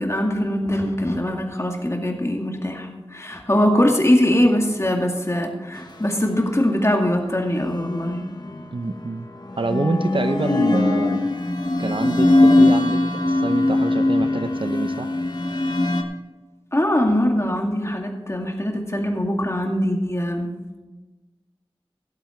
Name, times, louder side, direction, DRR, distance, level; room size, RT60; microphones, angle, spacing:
voice 1, 0.0-8.3 16.7-20.6, left 1 dB, 30° left, 2 dB, 2.2 m, -22 dB
sound 1, 7.7-8.6 9.5-16.0, left 2 dB, 45° left, 1.3 m, -20 dB
voice 2, 8.7-9.3 9.6-11.3 11.8-15.1, right 2 dB, 60° right, 9 dB, 0.8 m, -26 dB
16.0 x 8.0 x 4.5 m, 1.2 s
wide cardioid pair, 45°, 10 cm